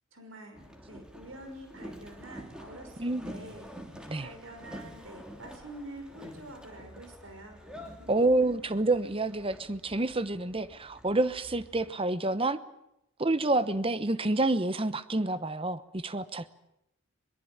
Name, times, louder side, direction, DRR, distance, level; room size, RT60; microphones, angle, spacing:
voice 1, 0.1-3.7 4.2-8.1 8.4-8.5, right 1 dB, 65° right, 6 dB, 5.7 m, -47 dB
Boat Water vehicle, 0.5-11.9, equal, 5° right, 3.1 m, -48 dB
voice 2, 3.0-3.4 4.1-4.3 8.1-12.6 13.2-16.5, right 2 dB, 25° right, 14 dB, 1.0 m, -28 dB
23.0 x 22.5 x 8.8 m, 0.83 s
head